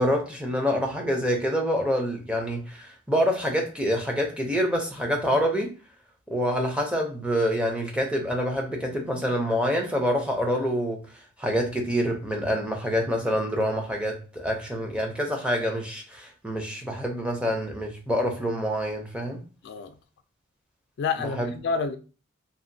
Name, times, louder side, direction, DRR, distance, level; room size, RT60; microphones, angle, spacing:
voice 1, 0.0-5.7 6.3-11.0 11.4-19.4 21.3-21.5, equal, 5° right, 0.6 m, -26 dB
voice 2, 19.6-19.9 21.0-22.0, left 5 dB, 55° left, 0.3 m, -28 dB
2.7 x 2.5 x 2.6 m
head